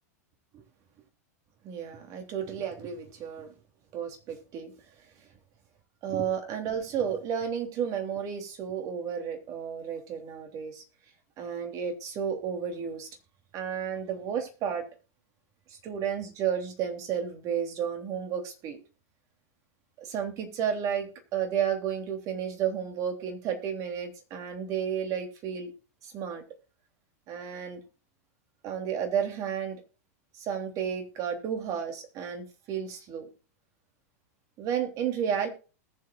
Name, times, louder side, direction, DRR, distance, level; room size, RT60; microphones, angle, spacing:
voice 1, 1.6-3.5 3.9-4.7 6.0-10.8 11.4-13.1 13.5-14.8 15.7-18.8 20.0-25.7 26.0-26.4 27.3-27.8 28.6-29.8 30.3-33.3 34.6-35.5, right 8 dB, 40° right, 4 dB, 3.3 m, -32 dB
20.0 x 7.8 x 2.5 m, 0.35 s
hypercardioid pair, 125°, 9 cm